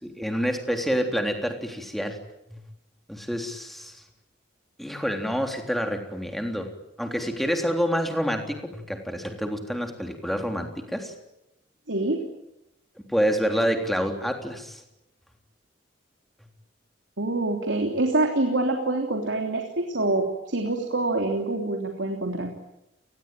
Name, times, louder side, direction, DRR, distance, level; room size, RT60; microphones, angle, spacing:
voice 1, 0.0-2.2 3.1-4.0 4.8-6.7 7.0-11.1 13.1-14.8, equal, ahead, 4 dB, 3.5 m, -27 dB
voice 2, 11.9-12.2 17.2-22.5, right 2 dB, 85° right, 3 dB, 3.3 m, -26 dB
29.5 x 20.5 x 9.1 m, 0.88 s
head